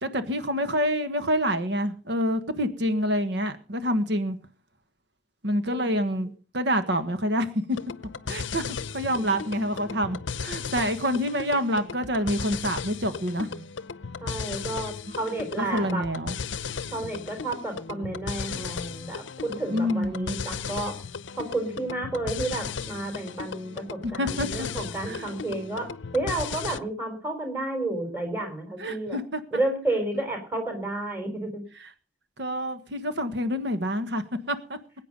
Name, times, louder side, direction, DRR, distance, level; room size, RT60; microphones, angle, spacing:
voice 1, 0.0-4.4 5.4-6.3 6.5-7.8 8.3-13.6 15.1-15.2 15.6-16.3 19.5-20.4 24.0-24.7 25.0-25.3 28.8-29.6 31.8-31.9 32.4-34.8, equal, 65° right, 9 dB, 1.6 m, -27 dB
sound 1, 7.7-26.8, left 5 dB, 80° left, 0.7 m, -36 dB
voice 2, 14.2-16.0 16.9-19.2 19.6-21.0 21.4-29.2 29.5-31.6, right 2 dB, 10° right, 4 dB, 4.1 m, -31 dB
21.5 x 9.0 x 5.4 m, 0.37 s
head